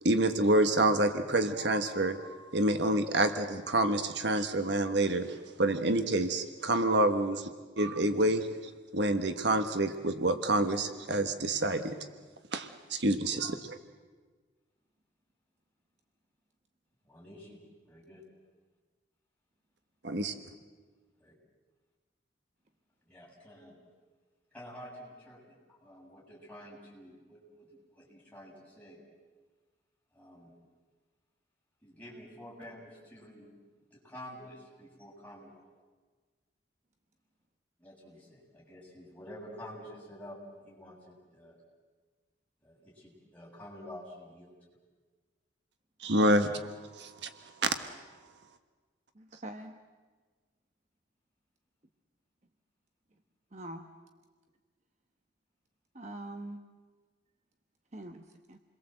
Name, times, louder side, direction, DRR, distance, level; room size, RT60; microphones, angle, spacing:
voice 1, 0.0-7.5 7.8-8.5 8.9-11.9 12.5-13.8 20.0-20.3 46.0-46.5 47.0-47.3, right 1 dB, 70° right, 8 dB, 1.4 m, -28 dB
voice 2, 17.0-18.2 21.2-21.3 23.1-23.8 24.5-29.0 30.1-30.5 31.8-33.5 33.9-35.7 37.8-41.5 42.6-44.5, equal, 10° left, -5 dB, 7.5 m, -49 dB
voice 3, 49.1-49.8 53.5-53.9 55.9-56.6 57.9-58.6, right 1 dB, 40° right, 5 dB, 1.1 m, -43 dB
28.5 x 22.0 x 7.9 m, 1.4 s
head